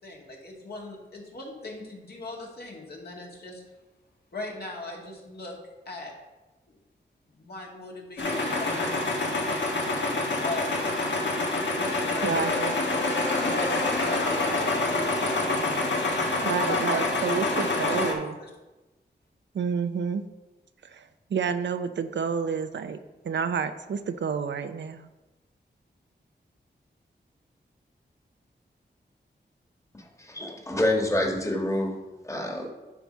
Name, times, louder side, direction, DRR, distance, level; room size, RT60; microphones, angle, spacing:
voice 1, 0.0-3.6 4.3-5.5 5.9-6.1 6.7-6.8 7.3-9.2 10.4-12.8 13.4-15.5 16.5-17.1 17.9-18.1 18.4-18.5, left 2 dB, 60° left, -1 dB, 2.0 m, -39 dB
sound 1, 8.2-18.1, left 2 dB, 85° left, 1.4 m, -27 dB
voice 2, 12.2-12.7 16.4-18.3 19.5-20.2 20.9-23.0 23.2-25.1, right 6 dB, 85° right, 10 dB, 0.6 m, -29 dB
voice 3, 30.3-32.0 32.2-32.7, left 1 dB, 15° left, 1 dB, 1.5 m, -26 dB
10.5 x 4.1 x 5.6 m, 1.1 s
wide cardioid pair, 100°, 18 cm